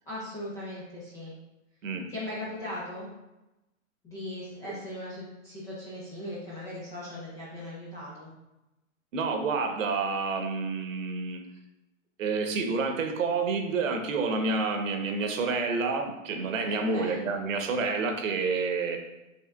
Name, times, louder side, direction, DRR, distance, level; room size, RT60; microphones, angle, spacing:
voice 1, 0.1-1.3 2.1-3.1 4.0-8.3 16.7-17.2, left 1 dB, 10° left, -8 dB, 0.3 m, -39 dB
voice 2, 9.1-11.4 12.2-19.0, right 4 dB, 75° right, 4 dB, 0.9 m, -29 dB
5.9 x 3.3 x 2.3 m, 0.98 s
hypercardioid pair, 125°, 40 cm